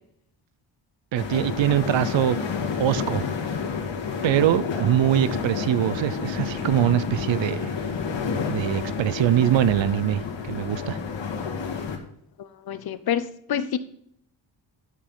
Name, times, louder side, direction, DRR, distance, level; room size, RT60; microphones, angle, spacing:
sound 1, 1.1-12.0, left 6 dB, 75° left, 2.1 m, -30 dB
voice 1, 1.1-2.4 2.8-3.3 4.2-7.7 8.5-11.0, right 11 dB, 80° right, 0.7 m, -23 dB
voice 2, 12.7-13.8, left 9 dB, 55° left, 0.7 m, -27 dB
11.5 x 5.3 x 5.6 m
wide cardioid pair, 155°, 45 cm